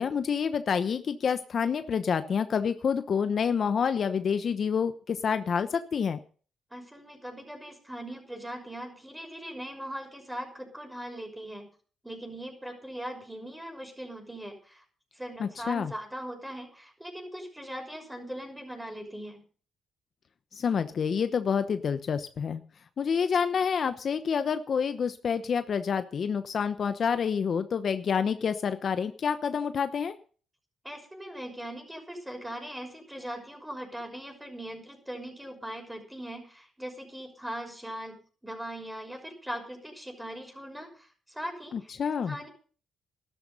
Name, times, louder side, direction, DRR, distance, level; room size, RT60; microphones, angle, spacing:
voice 1, 0.0-6.2 15.4-15.9 20.5-22.6 23.0-30.1 41.7-42.4, left 6 dB, 50° left, 10 dB, 0.9 m, -28 dB
voice 2, 6.7-11.7 12.0-14.8 15.1-19.4 30.8-42.5, right 1 dB, 5° right, 4 dB, 6.1 m, -40 dB
13.0 x 12.5 x 5.5 m, 0.42 s
cardioid pair, 90°, 0 cm